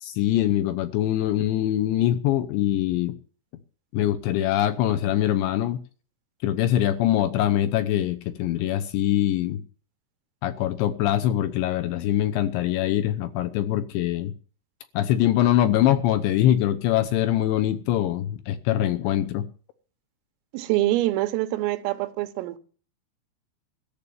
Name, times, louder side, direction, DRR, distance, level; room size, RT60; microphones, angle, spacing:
voice 1, 0.0-3.1 3.9-5.8 6.4-9.6 10.4-14.3 14.9-19.4, left 12 dB, 80° left, 2.8 m, -23 dB
voice 2, 20.5-22.6, right 16 dB, 85° right, 3.6 m, -25 dB
14.0 x 6.8 x 9.2 m
omnidirectional pair, 5.8 m